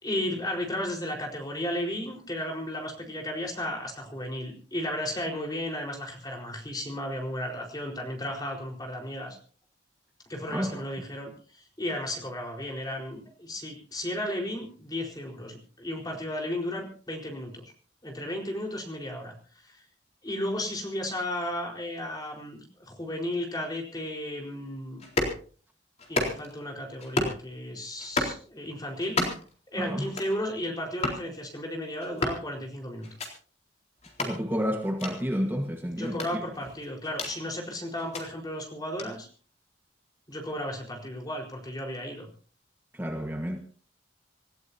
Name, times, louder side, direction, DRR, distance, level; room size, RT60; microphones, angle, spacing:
voice 1, 0.0-9.4 10.3-17.6 18.0-19.3 19.7-19.8 20.2-25.0 26.1-29.2 29.7-33.1 35.9-39.3 40.3-42.3, left 1 dB, 20° left, 4.4 m, -34 dB
voice 2, 10.5-10.8 29.8-30.1 34.2-36.4 42.9-43.6, equal, 10° right, 1.4 m, -30 dB
sound 1, 25.0-25.4 26.0-26.6 27.0-27.4 28.0-28.4 29.0-29.5 30.0-30.4 31.0-31.2 32.0-32.4 33.0-33.3 34.0-34.3 35.0-35.1 36.0-37.4 38.0-38.2 39.0-39.1, left 2 dB, 35° left, 4.0 m, -31 dB
26.5 x 15.0 x 2.8 m
head